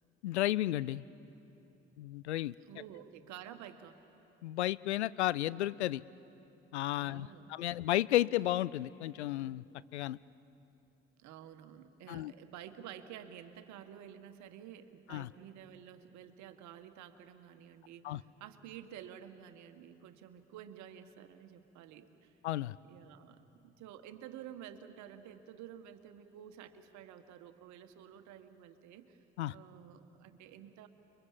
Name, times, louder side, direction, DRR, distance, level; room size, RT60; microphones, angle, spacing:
voice 1, 0.2-1.0 2.0-2.5 4.4-6.0 6.7-9.6 9.9-10.2 12.1-12.3 15.1-15.3 18.0-18.2 22.4-22.8 29.4-29.5, left 14 dB, 80° left, 20 dB, 0.5 m, -33 dB
voice 2, 2.6-4.0 6.9-7.7 11.2-22.3 22.9-29.2 29.5-30.9, right 10 dB, 55° right, 9 dB, 1.6 m, -51 dB
29.5 x 23.0 x 7.4 m, 2.9 s
figure-of-eight pair, 50°, 33 cm